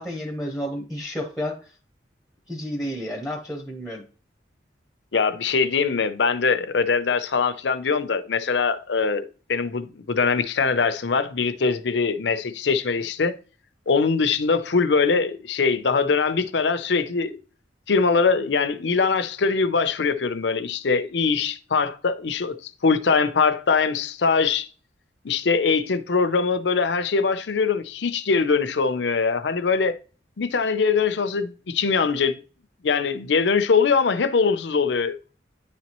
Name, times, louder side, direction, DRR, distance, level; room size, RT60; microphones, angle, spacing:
voice 1, 0.0-1.7 2.5-4.0, equal, ahead, 0.9 m, -31 dB
voice 2, 5.1-13.4 13.9-17.4 17.9-24.7 25.2-30.0 30.4-32.4 32.8-35.2, left 5 dB, 70° left, 0.6 m, -22 dB
10.0 x 4.1 x 3.0 m
head